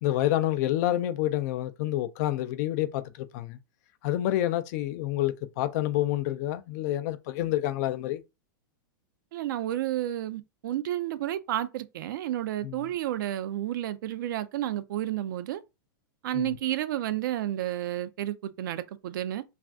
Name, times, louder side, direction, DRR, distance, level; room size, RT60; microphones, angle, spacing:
voice 1, 0.0-3.6 4.0-8.2 12.6-12.9 16.3-16.6, left 14 dB, 50° left, 0.4 m, -28 dB
voice 2, 9.3-15.6 16.2-19.4, right 13 dB, 70° right, 0.4 m, -31 dB
2.4 x 2.3 x 3.4 m
hypercardioid pair, 130°, 11 cm